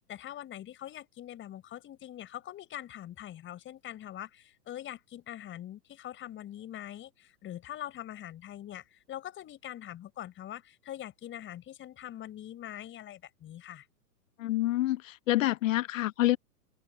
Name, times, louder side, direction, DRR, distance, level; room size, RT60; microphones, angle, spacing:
voice 1, 0.1-13.9, left 12 dB, 25° left, 6.4 m, -43 dB
voice 2, 14.4-16.4, left 16 dB, 55° left, 1.1 m, -27 dB
open air
hypercardioid pair, 120°, 48 cm